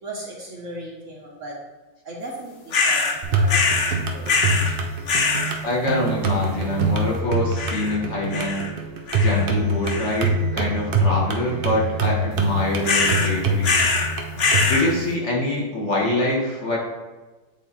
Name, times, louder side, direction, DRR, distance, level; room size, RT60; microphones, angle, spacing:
voice 1, 0.0-1.5 2.0-4.3, right 1 dB, 55° right, -2 dB, 1.1 m, -37 dB
sound 1, 2.7-3.2 3.5-4.0 4.3-4.7 5.1-5.5 7.6-8.0 8.3-8.7 9.1-9.5 9.9-10.3 12.8-13.3 13.6-14.1 14.4-14.9, left 4 dB, 60° left, 0.6 m, -22 dB
sound 2, 3.2-14.7, right 2 dB, 85° right, 0.4 m, -24 dB
voice 2, 5.6-8.6 9.1-13.8 14.7-16.8, left 1 dB, 45° left, -3 dB, 1.3 m, -25 dB
8.5 x 3.3 x 4.1 m, 1.2 s
omnidirectional pair, 1.9 m